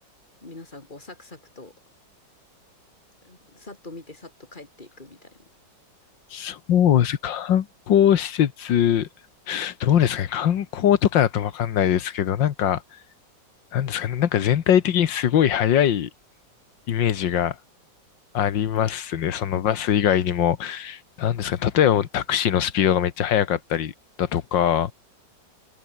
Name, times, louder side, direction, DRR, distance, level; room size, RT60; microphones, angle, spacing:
voice 1, 0.4-1.7 3.2-5.5 21.5-21.7, left 2 dB, 25° left, 2.8 m, -44 dB
voice 2, 6.3-9.1 9.5-12.8 13.7-16.1 16.9-17.6 18.3-23.9 24.2-24.9, left 10 dB, 80° left, 1.9 m, -22 dB
omnidirectional pair, 2.0 m